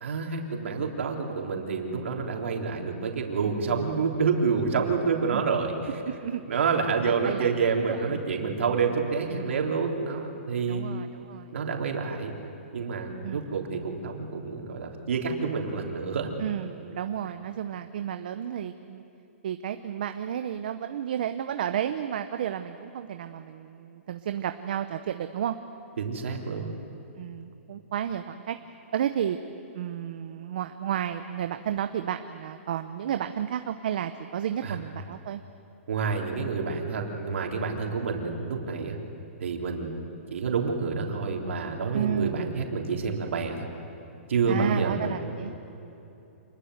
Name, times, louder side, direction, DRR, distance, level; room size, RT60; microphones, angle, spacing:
voice 1, 0.0-5.7 6.5-10.9 11.5-12.3 12.7-16.3 26.0-26.7 34.6-34.8 35.9-39.0 39.4-40.0 40.3-43.7 44.3-45.2, right 5 dB, 65° right, 1 dB, 3.6 m, -28 dB
voice 2, 6.0-6.7 7.0-8.1 10.7-11.6 13.2-13.4 16.4-19.0 19.4-25.6 27.2-28.6 28.9-29.4 29.7-35.4 41.9-42.5 44.5-45.6, right 9 dB, 40° right, 8 dB, 0.7 m, -32 dB
27.0 x 21.0 x 8.0 m, 2.9 s
hypercardioid pair, 180°, 7 cm